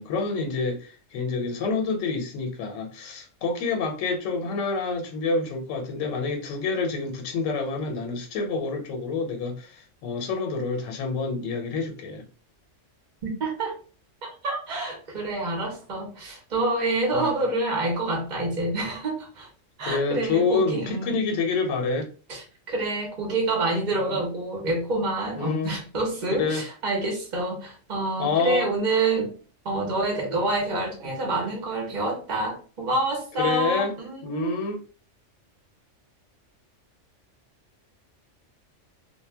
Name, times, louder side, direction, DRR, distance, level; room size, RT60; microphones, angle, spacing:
voice 1, 0.0-12.3 17.1-17.3 19.8-22.1 23.9-24.2 25.4-25.7 26.3-26.6 28.2-28.7 33.4-33.9 34.2-34.8, left 4 dB, 85° left, 0.9 m, -28 dB
voice 2, 13.2-13.8 14.2-19.5 19.8-21.3 22.3-29.3 29.6-34.6, right 2 dB, 50° right, 0.6 m, -27 dB
2.1 x 2.0 x 3.3 m
omnidirectional pair, 1.3 m